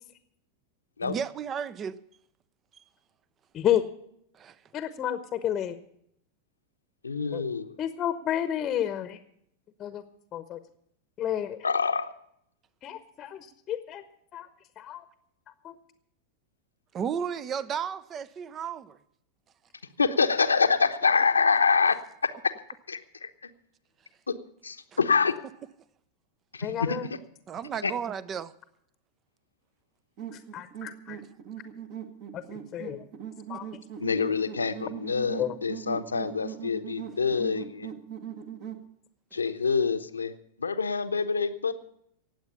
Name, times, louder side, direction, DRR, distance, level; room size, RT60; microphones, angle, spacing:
voice 1, 1.0-2.0 4.3-4.6 16.9-19.0 27.5-28.5 33.5-33.6, right 7 dB, 25° right, 0.7 m, -33 dB
voice 2, 4.7-5.8 7.3-7.4 7.8-9.2 9.8-10.0 10.3-10.6 11.2-11.6 12.8-14.0 14.3-14.5 14.8-15.0 15.6-15.8 26.6-27.1 30.3-31.2 32.3-33.0 33.5-33.7 35.4-35.5, left 10 dB, 30° left, 1.0 m, -31 dB
voice 3, 7.0-7.8 11.6-12.1 20.0-22.5 22.9-23.5 24.3-24.4 24.6-25.4 26.5-27.2 27.8-27.9 34.0-37.9 39.3-41.7, left 5 dB, 75° left, 0.9 m, -26 dB
sound 1, 30.2-38.9, right 9 dB, 45° right, 1.7 m, -40 dB
18.5 x 8.0 x 6.7 m
figure-of-eight pair, 90°, 0 cm